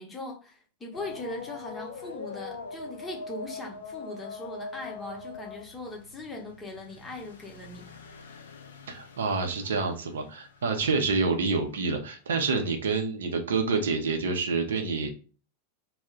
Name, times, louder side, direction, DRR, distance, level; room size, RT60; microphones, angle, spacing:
voice 1, 0.0-7.9, left 2 dB, 15° left, 0.8 m, -40 dB
sound 1, 0.9-10.8 11.2-11.3 12.5-12.6, left 4 dB, 65° left, 0.4 m, -43 dB
voice 2, 8.9-15.1, right 4 dB, 65° right, 0.5 m, -27 dB
2.2 x 2.0 x 3.7 m
figure-of-eight pair, 90°, 0 cm